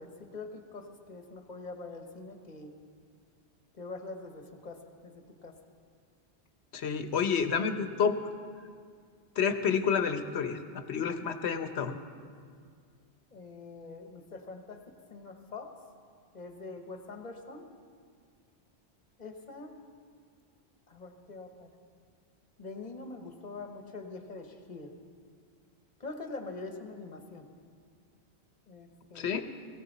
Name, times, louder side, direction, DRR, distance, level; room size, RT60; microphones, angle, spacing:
voice 1, 0.0-2.8 3.7-5.6 13.3-14.8 15.1-15.7 16.3-17.7 19.2-19.7 20.9-21.7 22.6-24.9 26.0-27.5 28.7-29.3, left 3 dB, 40° left, 5 dB, 1.3 m, -44 dB
voice 2, 6.7-8.2 9.4-12.0 29.1-29.4, left 6 dB, 80° left, 9 dB, 1.1 m, -29 dB
18.5 x 17.5 x 4.1 m, 2.1 s
omnidirectional pair, 1.1 m